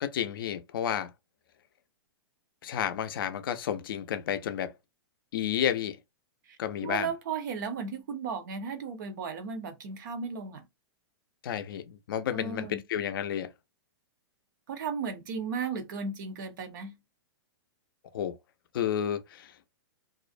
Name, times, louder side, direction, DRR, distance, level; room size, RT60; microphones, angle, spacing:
voice 1, 0.0-1.1 2.6-4.7 5.3-6.0 6.6-7.1 11.4-13.5 18.1-18.4 18.7-19.7, left 9 dB, 55° left, 0.4 m, -31 dB
voice 2, 6.8-10.7 12.3-12.8 14.7-17.0, right 5 dB, 50° right, 0.6 m, -35 dB
2.4 x 2.1 x 2.5 m
hypercardioid pair, 165°, 14 cm